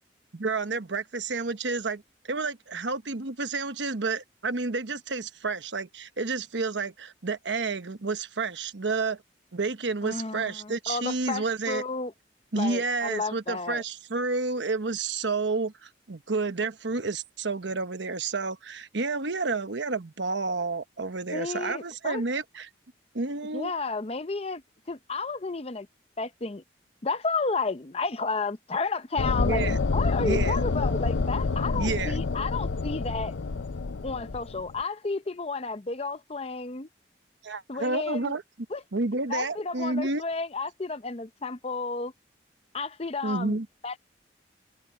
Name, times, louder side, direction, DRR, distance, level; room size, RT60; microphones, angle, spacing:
voice 1, 0.3-9.2 9.5-11.8 12.5-22.7 23.1-23.7 29.4-29.8 30.2-30.6 31.7-32.2 37.4-38.4 38.9-40.2 43.2-43.7, right 3 dB, 80° right, 1.1 m, -30 dB
voice 2, 10.0-12.1 12.5-13.8 21.3-22.2 23.5-24.6 24.9-25.9 26.2-26.6 27.0-33.3 34.0-36.9 37.7-38.4 38.7-38.8 39.3-42.1 42.7-44.0, left 3 dB, 35° left, 0.7 m, -32 dB
sound 1, 29.2-34.8, left 4 dB, 90° left, 0.6 m, -28 dB
head